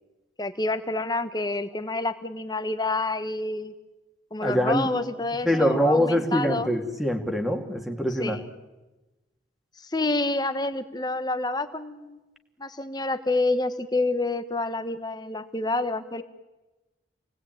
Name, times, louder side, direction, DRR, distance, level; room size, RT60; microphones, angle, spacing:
voice 1, 0.4-3.7 4.3-6.7 8.2-8.4 9.8-12.2 12.6-16.2, left 2 dB, 20° left, 10 dB, 1.4 m, -28 dB
voice 2, 4.4-4.9 5.4-8.4, equal, ahead, 4 dB, 2.4 m, -24 dB
28.5 x 19.5 x 9.2 m, 1.1 s
head